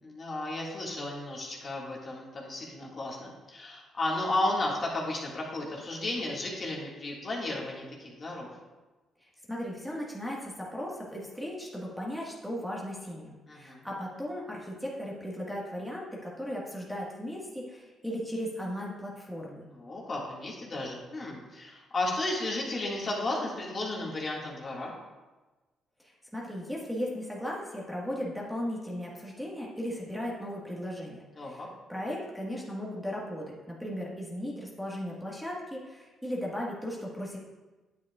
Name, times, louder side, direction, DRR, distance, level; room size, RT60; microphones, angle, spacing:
voice 1, 0.0-8.5 13.5-13.9 19.7-24.9 31.4-31.7, left 2 dB, 40° left, -3 dB, 1.9 m, -34 dB
voice 2, 9.5-19.6 26.3-31.6 31.9-37.4, equal, ahead, -4 dB, 1.6 m, -36 dB
9.4 x 8.0 x 2.4 m, 1.2 s
cardioid pair, 90°, 0 cm